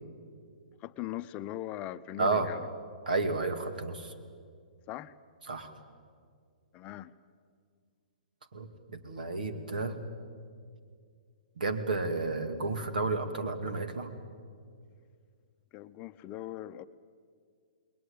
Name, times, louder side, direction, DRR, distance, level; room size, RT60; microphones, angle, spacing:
voice 1, 0.8-2.6 4.9-5.2 6.7-7.1 15.7-16.9, left 13 dB, 30° left, 11 dB, 0.7 m, -40 dB
voice 2, 2.2-2.5 3.1-4.1 5.5-5.7 8.5-10.0 11.6-14.1, right 3 dB, 70° right, 9 dB, 2.4 m, -31 dB
29.0 x 20.5 x 8.8 m, 2.2 s
hypercardioid pair, 125°, 5 cm